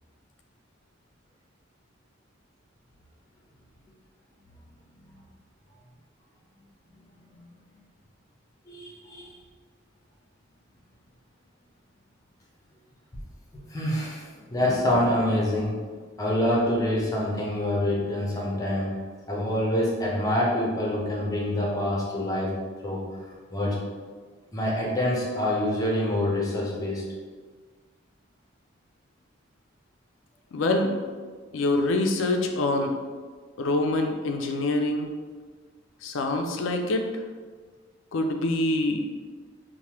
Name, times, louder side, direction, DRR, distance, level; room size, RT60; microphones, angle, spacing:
voice 1, 6.9-7.5 8.7-9.3 13.7-15.7 16.2-18.9 19.3-22.6 22.8-23.0 23.5-23.8 24.5-27.0, left 1 dB, 20° left, -4 dB, 0.6 m, -26 dB
voice 2, 30.5-30.9 31.5-33.0 33.6-35.1 36.0-37.1 38.1-39.0, left 2 dB, 70° left, 4 dB, 0.4 m, -25 dB
3.2 x 2.1 x 2.9 m, 1.5 s
head